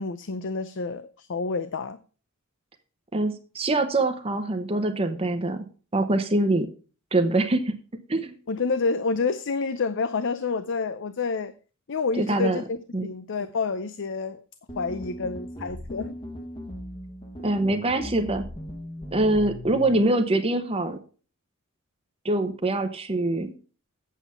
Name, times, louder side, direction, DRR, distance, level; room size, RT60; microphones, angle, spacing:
voice 1, 0.0-2.0 8.5-11.5 11.9-14.4 14.8-16.2, left 4 dB, 60° left, 0.6 m, -28 dB
voice 2, 3.1-5.6 5.9-6.7 7.1-7.7 8.1-8.3 12.2-12.6 12.9-13.1 17.4-18.4 19.1-21.0 22.2-23.5, right 2 dB, 30° right, 0.9 m, -24 dB
sound 1, 14.7-20.0, equal, 25° left, 1.2 m, -38 dB
8.4 x 7.1 x 5.7 m
head